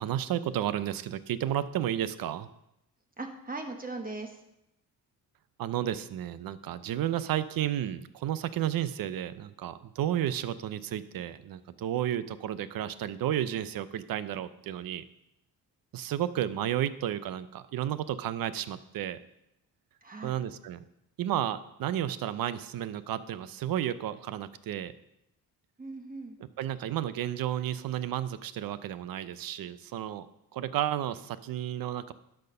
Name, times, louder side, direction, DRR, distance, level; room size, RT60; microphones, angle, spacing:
voice 1, 0.0-2.5 5.6-15.0 15.9-19.2 20.2-20.8 21.2-24.9 26.6-30.3 30.5-32.1, right 11 dB, 70° right, 15 dB, 0.6 m, -32 dB
voice 2, 3.2-4.4 20.0-20.4 25.8-26.4, right 3 dB, 25° right, 4 dB, 1.1 m, -39 dB
12.0 x 4.4 x 5.5 m, 0.84 s
cardioid pair, 100°, 37 cm